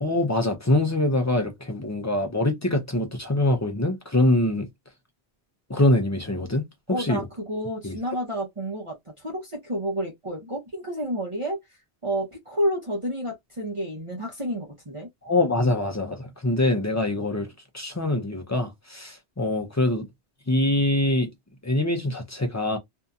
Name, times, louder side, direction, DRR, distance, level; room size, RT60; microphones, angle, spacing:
voice 1, 0.0-4.7 5.7-6.7 7.0-7.2 15.2-17.5 17.7-20.1 20.5-21.3 21.6-22.8, left 1 dB, 30° left, 0.3 m, -24 dB
voice 2, 6.9-15.1, equal, 30° right, 0.8 m, -30 dB
2.7 x 2.6 x 2.3 m
omnidirectional pair, 1.1 m